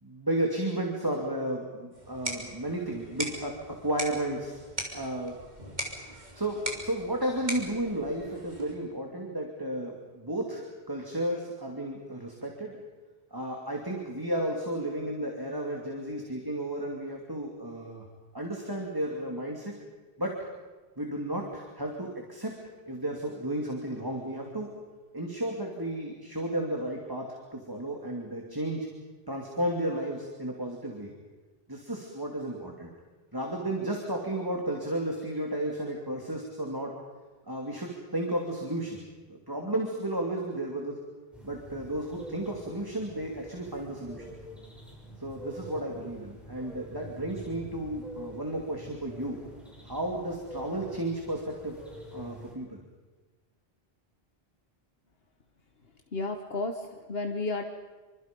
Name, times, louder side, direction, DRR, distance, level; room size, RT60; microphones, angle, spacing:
voice 1, 0.0-4.6 4.9-5.4 6.3-12.8 13.3-18.1 18.3-19.8 20.2-20.5 21.0-22.6 22.9-24.7 25.1-28.9 29.3-31.1 31.7-32.9 33.3-36.9 37.5-39.0 39.3-41.0 41.4-44.3 45.2-49.4 49.8-51.8 52.1-52.8, right 1 dB, 20° right, 0 dB, 2.8 m, -33 dB
sound 1, 1.9-8.9, right 1 dB, 45° right, 3.6 m, -39 dB
sound 2, 41.3-52.5, equal, ahead, 6.7 m, -47 dB
voice 2, 56.1-57.7, left 2 dB, 70° left, 5 dB, 1.5 m, -32 dB
27.0 x 25.5 x 5.4 m, 1.3 s
omnidirectional pair, 1.0 m